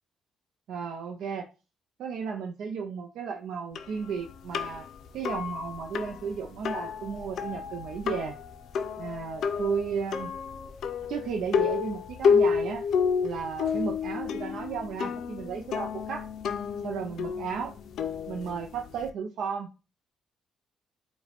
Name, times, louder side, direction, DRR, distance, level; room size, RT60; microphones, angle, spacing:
voice 1, 0.7-1.4 2.0-4.9 5.1-8.3 9.0-10.3 11.1-12.8 13.2-16.3 16.8-17.8 18.3-19.7, right 6 dB, 80° right, 2 dB, 0.4 m, -34 dB
sound 1, 3.7-19.1, left 6 dB, 70° left, 0.4 m, -30 dB
4.6 x 2.2 x 3.4 m, 0.32 s
cardioid pair, 90°, 0 cm